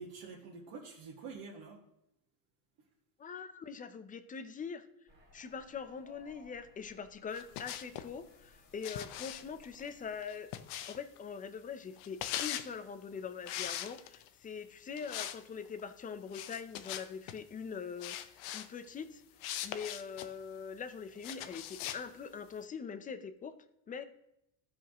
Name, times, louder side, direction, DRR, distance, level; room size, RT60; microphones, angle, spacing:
voice 1, 0.0-1.8, right 4 dB, 65° right, -3 dB, 1.6 m, -47 dB
voice 2, 3.2-4.8 5.3-10.5 10.9-19.2 19.6-23.6 23.9-24.0, left 6 dB, 20° left, 11 dB, 0.4 m, -43 dB
sound 1, 5.1-10.2, left 1 dB, 20° right, 1.6 m, -63 dB
sound 2, 7.3-8.1 8.8-11.2 12.0-12.7 13.4-14.3 15.0-15.4 15.7-15.8 16.3-17.4 18.0-18.7 19.4-20.3 21.2-22.0, left 12 dB, 85° left, 0.8 m, -40 dB
15.0 x 5.1 x 2.9 m, 0.82 s
cardioid pair, 140°, 45 cm